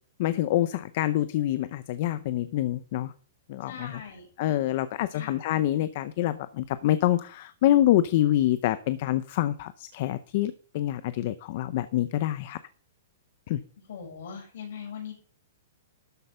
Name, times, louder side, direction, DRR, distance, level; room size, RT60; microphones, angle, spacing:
voice 1, 0.2-3.1 3.5-3.9 4.4-12.6 13.5-13.6, left 13 dB, 35° left, 14 dB, 0.6 m, -26 dB
voice 2, 3.7-4.3 5.1-5.4 13.9-15.1, left 7 dB, 55° left, 2 dB, 6.0 m, -40 dB
12.5 x 7.9 x 5.6 m, 0.42 s
hypercardioid pair, 175°, 0 cm